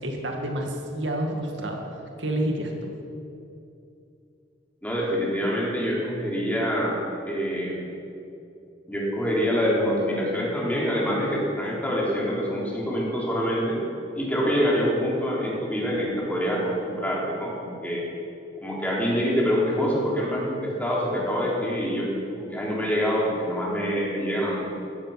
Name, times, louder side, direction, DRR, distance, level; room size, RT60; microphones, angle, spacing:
voice 1, 0.0-2.9, right 1 dB, 75° right, 2 dB, 2.2 m, -29 dB
voice 2, 4.8-7.0 7.2-7.9 8.9-13.8 14.1-18.0 18.6-22.1 22.4-24.8, equal, 10° left, -4 dB, 3.8 m, -25 dB
16.5 x 14.0 x 6.0 m, 2.6 s
head